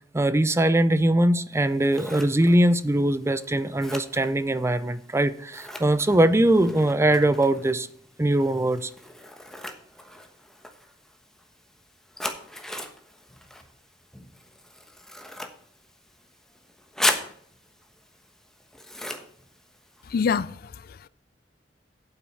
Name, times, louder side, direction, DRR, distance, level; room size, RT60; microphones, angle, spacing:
voice 1, 0.1-7.9 8.2-8.9, right 1 dB, 15° right, 0.5 m, -21 dB
Scissors, 1.5-20.3, left 1 dB, 5° left, 1.1 m, -38 dB
voice 2, 20.0-21.1, left 6 dB, 60° left, 0.4 m, -27 dB
8.9 x 8.0 x 5.5 m
head